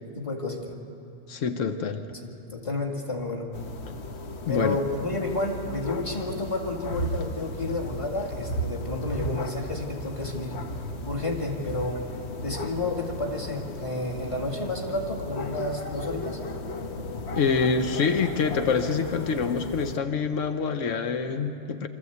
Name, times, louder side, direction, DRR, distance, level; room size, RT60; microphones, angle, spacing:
voice 1, 0.2-0.8 2.1-3.5 4.5-10.6 11.1-12.0 12.4-16.4, left 2 dB, 25° left, 0 dB, 2.2 m, -31 dB
voice 2, 1.3-2.0 4.5-4.8 17.3-21.9, left 5 dB, 90° left, 7 dB, 1.2 m, -26 dB
sound 1, 3.5-20.0, left 1 dB, 65° left, 1.3 m, -35 dB
25.5 x 14.0 x 8.1 m, 2.7 s
omnidirectional pair, 1.3 m